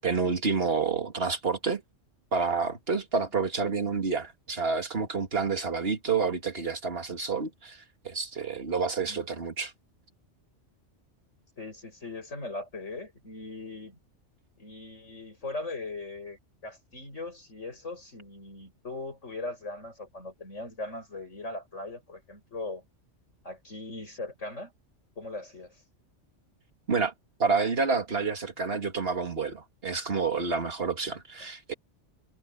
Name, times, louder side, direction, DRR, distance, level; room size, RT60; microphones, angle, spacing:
voice 1, 0.0-1.8 2.3-9.7 26.9-27.1 27.4-31.7, right 4 dB, 55° right, 2.4 m, -29 dB
voice 2, 3.3-3.7 9.1-9.2 11.6-14.0 14.6-22.8 23.4-24.7 25.2-25.8, left 2 dB, 80° left, 7.9 m, -39 dB
omnidirectional pair, 1.2 m